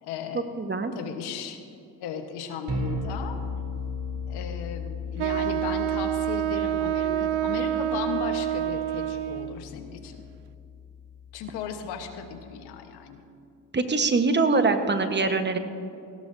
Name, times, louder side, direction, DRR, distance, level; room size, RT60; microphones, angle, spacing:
voice 1, 0.0-0.5 0.9-1.6 2.0-3.4 4.3-10.3 11.3-13.2, left 7 dB, 80° left, 6 dB, 1.3 m, -36 dB
voice 2, 0.6-0.9 13.7-15.6, right 3 dB, 25° right, 7 dB, 1.3 m, -23 dB
sound 1, 2.7-12.7, left 3 dB, 45° right, 3.4 m, -37 dB
Wind instrument woodwind instrument, 5.2-9.6, right 13 dB, 85° right, 0.5 m, -27 dB
17.5 x 17.0 x 2.7 m, 2.5 s
supercardioid pair, 70°, 39 cm